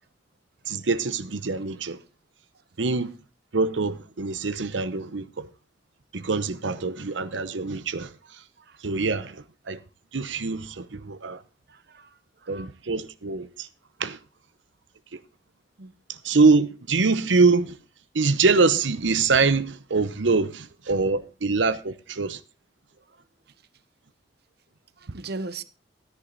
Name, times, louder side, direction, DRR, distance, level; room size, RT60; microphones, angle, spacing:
voice 1, 0.7-2.0 2.8-3.1 3.5-5.5 6.1-8.4 8.8-9.8 10.1-11.4 12.5-13.7 14.0-14.2 16.1-17.8 18.1-22.4, right 4 dB, 90° right, 0.8 m, -24 dB
voice 2, 11.7-12.7 15.8-15.9 23.1-23.2 25.0-25.6, right 3 dB, 60° right, 0.9 m, -39 dB
13.5 x 10.0 x 4.0 m
head